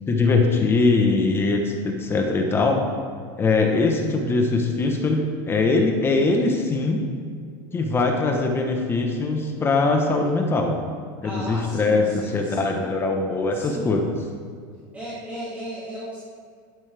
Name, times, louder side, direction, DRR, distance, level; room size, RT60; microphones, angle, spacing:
voice 1, 0.1-2.9 3.4-7.0 7.7-10.8 11.2-12.0 12.3-14.0, left 3 dB, 20° left, 3 dB, 1.1 m, -21 dB
voice 2, 11.2-12.9 13.5-14.0 14.9-16.2, right 1 dB, 15° right, -8 dB, 2.2 m, -35 dB
11.0 x 10.5 x 3.5 m, 2.2 s
supercardioid pair, 140°, 11 cm